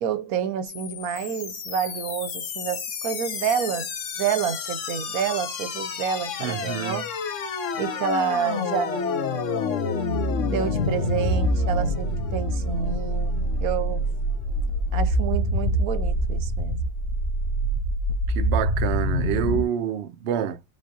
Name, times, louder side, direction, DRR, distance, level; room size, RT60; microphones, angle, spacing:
voice 1, 0.0-7.1 7.8-9.6 10.4-14.2 14.9-16.9, right 7 dB, 85° right, 1.2 m, -29 dB
sound 1, 0.7-19.6, left 1 dB, 60° left, 1.2 m, -27 dB
voice 2, 6.4-7.0 18.3-20.6, right 9 dB, 60° right, 0.8 m, -27 dB
5.5 x 3.3 x 2.8 m
omnidirectional pair, 1.5 m